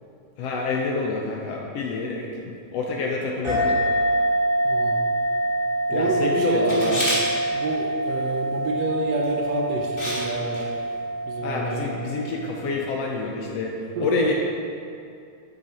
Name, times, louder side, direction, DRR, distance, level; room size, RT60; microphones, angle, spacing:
voice 1, 0.4-3.7 5.9-7.1 11.4-14.3, left 3 dB, 70° left, -1 dB, 1.7 m, -27 dB
sound 1, 3.4-12.5, right 1 dB, 25° right, 2.6 m, -25 dB
voice 2, 4.6-5.0 5.9-7.1 7.5-10.7 11.3-11.9 14.0-14.3, right 2 dB, 70° right, 1 dB, 1.8 m, -28 dB
Camera, 6.7-7.2 9.2-9.4 10.0-10.3 10.5-10.6, equal, 25° left, 2.5 m, -27 dB
10.0 x 6.6 x 4.3 m, 2.4 s
omnidirectional pair, 3.4 m